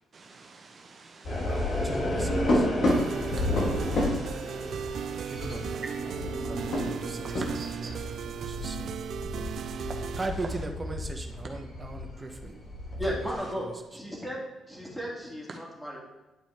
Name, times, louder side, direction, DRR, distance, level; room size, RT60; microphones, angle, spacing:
voice 1, 0.1-2.0 3.2-5.8 6.6-7.0 7.2-8.1 9.4-10.2, right 3 dB, 45° right, 1.2 m, -47 dB
sound 1, 1.2-13.4, left 1 dB, 55° left, 2.1 m, -31 dB
sound 2, 2.9-10.3, right 8 dB, 65° right, 0.3 m, -36 dB
voice 2, 10.2-12.3, right 2 dB, 25° right, 1.2 m, -36 dB
voice 3, 13.0-14.4 14.7-16.0, equal, 10° left, 2.8 m, -35 dB
11.0 x 5.0 x 3.7 m
cardioid pair, 90°, 0 cm